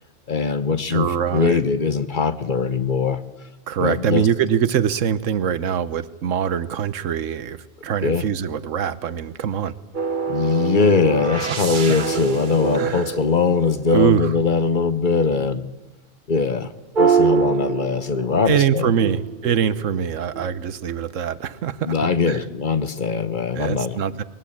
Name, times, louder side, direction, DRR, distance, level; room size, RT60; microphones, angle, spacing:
voice 1, 0.3-3.2 3.8-4.3 8.0-8.3 10.3-15.7 16.3-16.7 17.0-19.1 21.8-24.0, left 4 dB, 45° left, 12 dB, 1.0 m, -21 dB
voice 2, 0.9-1.6 3.7-9.8 11.4-11.6 12.7-13.1 13.9-14.3 18.5-21.9 22.3-22.4 23.5-24.2, right 8 dB, 90° right, 15 dB, 1.3 m, -23 dB
sound 1, 9.9-14.1 17.0-18.5 19.0-20.7, right 6 dB, 45° right, 1.2 m, -24 dB
21.0 x 18.5 x 8.5 m, 1.1 s
omnidirectional pair, 1.3 m